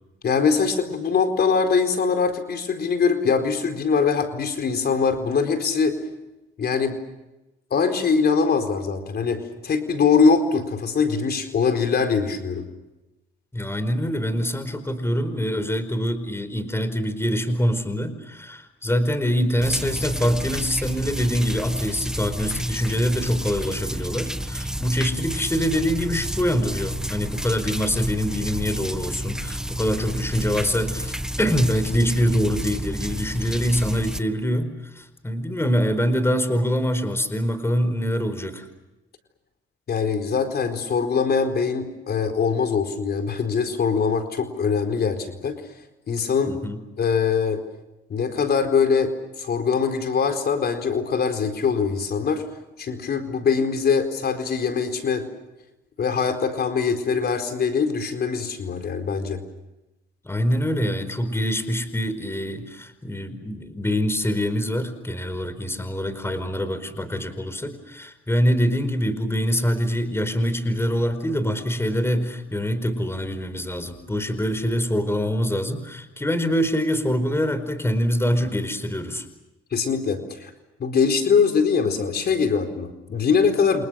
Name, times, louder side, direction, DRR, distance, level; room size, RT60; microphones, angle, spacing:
voice 1, 0.2-6.0 6.6-7.0 7.7-12.7 39.9-45.6 46.1-46.6 47.0-47.6 48.1-52.4 52.8-55.3 56.0-59.4 79.7-80.5 80.8-83.8, left 5 dB, 55° left, 6 dB, 4.4 m, -22 dB
voice 2, 13.5-38.7 46.5-46.8 60.2-79.3, equal, 10° left, 12 dB, 4.8 m, -24 dB
sound 1, 19.6-34.2, equal, 5° right, 1.5 m, -30 dB
30.0 x 27.5 x 6.5 m, 0.99 s
cardioid pair, 90°, 20 cm